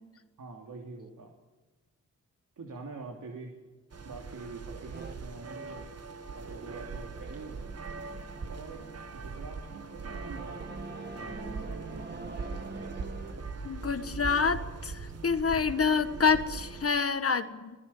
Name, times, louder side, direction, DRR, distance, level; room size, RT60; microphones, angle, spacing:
voice 1, 0.4-1.3 2.6-3.6 4.0-5.9 6.3-7.6 8.5-10.6 11.0-12.6, right 3 dB, 70° right, 1 dB, 3.2 m, -46 dB
sound 1, 3.9-16.9, right 4 dB, 50° right, 1.8 m, -41 dB
sound 2, 4.9-5.1 6.3-13.3, right 2 dB, 30° right, 2.2 m, -46 dB
voice 2, 13.6-17.7, left 5 dB, 45° left, 9 dB, 1.6 m, -27 dB
26.5 x 19.0 x 7.3 m, 1.2 s
cardioid pair, 90°, 32 cm